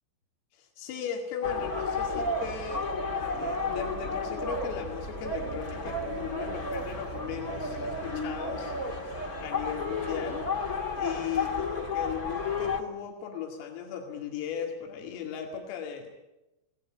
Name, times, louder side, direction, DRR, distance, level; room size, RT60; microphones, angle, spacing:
voice 1, 0.5-10.5 11.0-16.1, left 8 dB, 90° left, 2 dB, 4.9 m, -37 dB
sound 1, 1.4-12.8, left 3 dB, 60° left, 0.9 m, -32 dB
25.5 x 18.5 x 10.0 m, 0.98 s
omnidirectional pair, 5.8 m